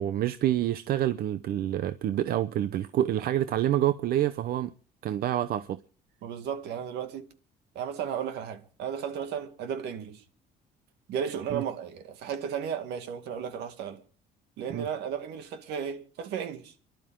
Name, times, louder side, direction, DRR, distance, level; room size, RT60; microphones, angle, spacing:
voice 1, 0.0-4.7 5.0-5.8 11.5-11.6 14.7-14.9, right 12 dB, 65° right, 0.8 m, -27 dB
voice 2, 6.2-7.3 7.7-10.2 11.1-14.0 14.6-16.7, right 8 dB, 80° right, 2.3 m, -34 dB
29.5 x 12.0 x 3.8 m
cardioid pair, 110°, 17 cm